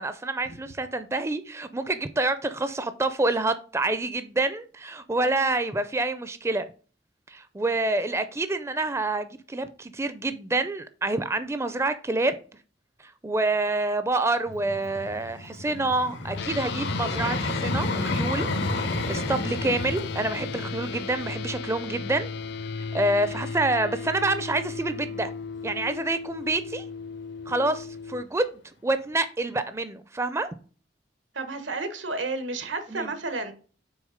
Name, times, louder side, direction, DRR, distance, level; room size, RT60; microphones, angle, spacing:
voice 1, 0.0-6.7 7.3-12.4 13.2-22.3 22.9-25.3 25.6-26.9 27.5-28.5 28.8-30.5 32.9-33.1, right 2 dB, 15° right, 0.4 m, -27 dB
Vehicle, 14.5-23.5 24.2-24.3, left 2 dB, 85° left, 1.2 m, -32 dB
sound 1, 16.3-28.2, left 5 dB, 60° left, 0.4 m, -36 dB
voice 2, 31.3-33.5, right 3 dB, 90° right, 1.2 m, -31 dB
6.3 x 4.1 x 5.0 m
head